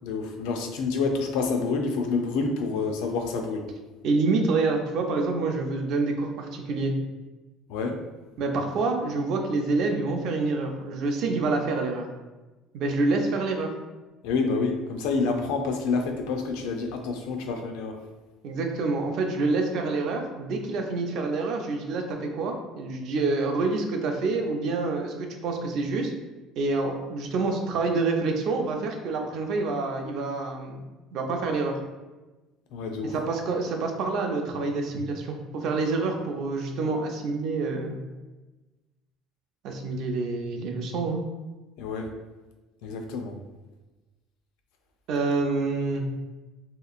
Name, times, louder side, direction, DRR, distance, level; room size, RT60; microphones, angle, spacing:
voice 1, 0.0-3.7 7.7-8.0 14.2-18.0 32.7-33.2 41.8-42.1 42.8-43.4, left 4 dB, 85° left, 4 dB, 0.4 m, -28 dB
voice 2, 4.0-6.9 8.4-12.1 12.7-13.7 18.4-26.1 26.6-30.8 31.1-31.8 33.1-38.0 39.6-41.2 45.1-46.0, right 3 dB, 50° right, 3 dB, 0.4 m, -27 dB
3.6 x 2.8 x 2.4 m, 1.1 s
cardioid pair, 180°, 0 cm